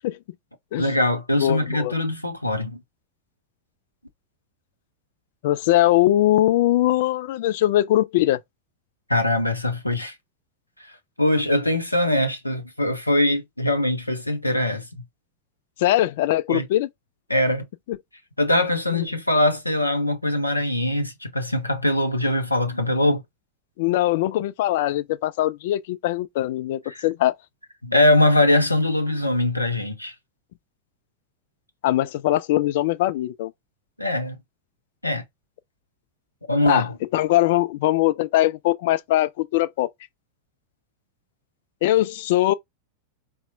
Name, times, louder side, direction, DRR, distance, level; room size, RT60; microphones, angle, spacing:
voice 1, 0.8-2.8 9.1-10.1 11.2-15.0 16.5-16.7 17.3-17.6 18.4-23.2 26.9-27.1 27.8-30.1 34.0-34.4 35.0-35.2 36.5-37.0, left 1 dB, 85° left, 0.6 m, -22 dB
voice 2, 1.4-1.9 5.4-8.4 15.8-16.9 17.9-18.0 18.9-19.0 23.8-27.3 31.8-33.5 36.7-39.9 41.8-42.5, left 14 dB, 50° left, 0.4 m, -21 dB
4.1 x 2.1 x 2.6 m
figure-of-eight pair, 90°, 0 cm